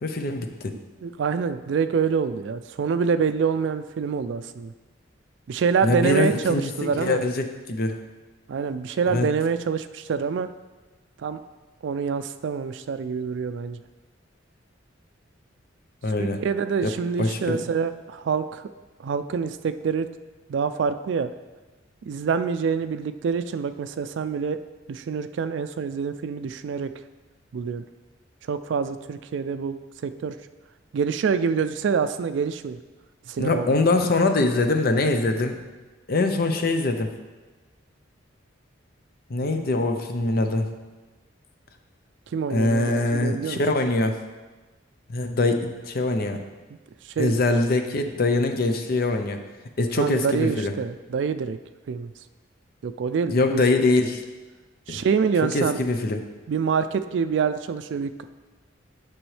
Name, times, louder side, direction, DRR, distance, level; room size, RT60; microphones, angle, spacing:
voice 1, 0.0-0.7 5.8-8.0 9.1-9.3 16.0-16.4 16.8-17.6 33.4-35.6 36.1-37.1 39.3-40.7 42.5-44.2 45.1-46.4 47.2-49.4 49.8-50.7 53.3-54.2 54.9-55.0 55.4-56.2, left 2 dB, 50° left, 6 dB, 0.6 m, -23 dB
voice 2, 1.0-4.7 5.5-7.2 8.5-10.5 11.2-11.4 11.8-13.8 16.2-18.6 19.0-20.1 20.5-21.3 22.0-24.6 24.9-26.9 27.5-27.8 28.5-29.7 30.0-30.3 30.9-32.8 33.3-33.8 39.5-39.6 42.3-43.6 47.2-47.4 50.0-51.6 51.9-52.1 52.8-53.6 54.9-55.8 56.5-58.2, right 6 dB, 65° right, 10 dB, 0.3 m, -26 dB
9.0 x 6.1 x 3.2 m, 1.2 s
head